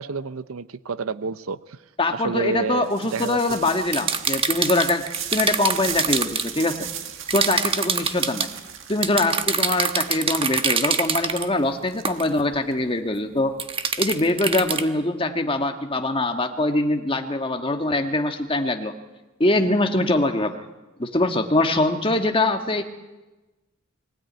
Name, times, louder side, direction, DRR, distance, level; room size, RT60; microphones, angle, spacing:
voice 1, 0.0-1.8 2.1-3.7, right 4 dB, 90° right, 15 dB, 0.7 m, -29 dB
voice 2, 2.0-5.0 5.3-6.9 7.3-8.5 8.9-13.5 14.0-18.9 19.4-20.6 21.0-22.8, left 2 dB, 25° left, 5 dB, 1.5 m, -23 dB
sound 1, 2.8-12.7, right 9 dB, 65° right, 1.8 m, -37 dB
sound 2, 3.9-6.5 7.3-8.5 9.0-11.5 12.0-12.3 13.6-14.8, right 6 dB, 25° right, 1.1 m, -24 dB
23.0 x 16.5 x 9.4 m, 1.1 s
head